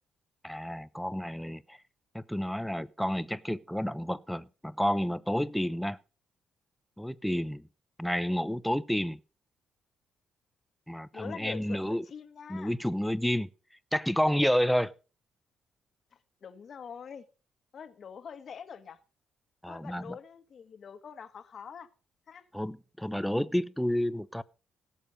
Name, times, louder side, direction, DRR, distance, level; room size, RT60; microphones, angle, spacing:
voice 1, 0.4-1.8 2.1-6.0 7.0-7.7 8.0-9.2 10.9-12.0 12.5-13.5 13.9-14.9 19.6-20.2 22.5-24.4, equal, 5° left, 0.7 m, -30 dB
voice 2, 11.1-12.7 16.4-17.2 17.7-19.0 19.7-21.9 22.3-22.5, left 7 dB, 50° left, 1.5 m, -44 dB
17.5 x 7.2 x 5.1 m
cardioid pair, 90°, 0 cm